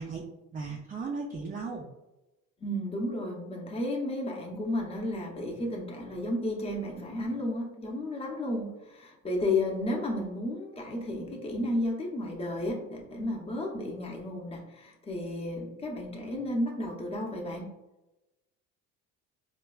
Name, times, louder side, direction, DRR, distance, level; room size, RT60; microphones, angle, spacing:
voice 1, 0.0-1.9, right 4 dB, 25° right, 0 dB, 0.4 m, -37 dB
voice 2, 2.6-17.7, left 1 dB, 20° left, 0 dB, 0.6 m, -33 dB
4.4 x 2.2 x 2.3 m, 0.99 s
cardioid pair, 120°, 32 cm